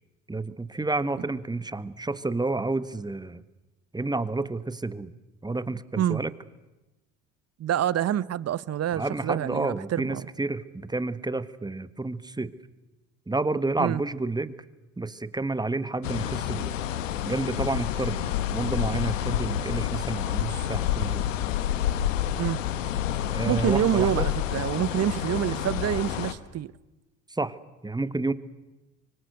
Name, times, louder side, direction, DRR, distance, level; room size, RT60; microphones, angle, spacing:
voice 1, 0.3-3.4 3.9-5.1 5.4-6.3 8.9-12.5 13.3-14.5 15.0-16.8 17.2-21.3 23.3-24.3 27.3-27.6 27.8-28.3, right 2 dB, 10° right, 1.4 m, -30 dB
voice 2, 7.6-10.2 13.8-14.0 22.4-22.6 23.5-26.7, right 11 dB, 40° right, 0.9 m, -27 dB
sound 1, 16.0-26.3, left 11 dB, 80° left, 1.3 m, -29 dB
25.0 x 24.5 x 8.0 m
hypercardioid pair, 60°, 37 cm